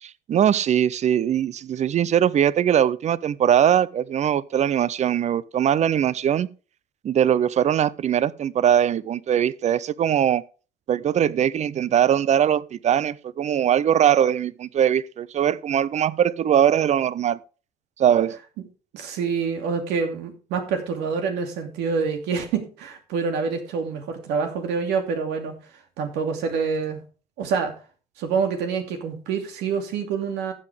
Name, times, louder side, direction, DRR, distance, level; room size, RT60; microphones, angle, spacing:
voice 1, 0.0-6.5 7.0-10.4 10.9-17.4 18.0-18.4, right 9 dB, 45° right, 0.6 m, -21 dB
voice 2, 18.9-25.6 26.0-27.0 27.4-27.7 28.2-30.5, right 5 dB, 90° right, 2.7 m, -26 dB
14.5 x 7.7 x 3.5 m
cardioid pair, 110°, 17 cm